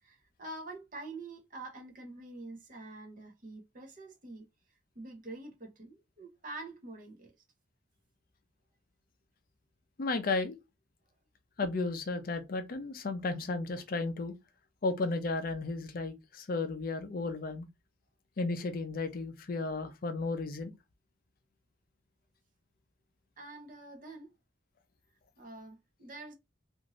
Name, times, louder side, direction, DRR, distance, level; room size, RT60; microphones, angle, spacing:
voice 1, 0.0-4.5 4.9-7.3 23.4-24.3 25.4-26.3, right 2 dB, 40° right, 0.7 m, -46 dB
voice 2, 10.0-10.6 11.6-14.3 14.8-17.7 18.4-20.7, left 3 dB, 45° left, 0.4 m, -34 dB
2.6 x 2.5 x 2.9 m
head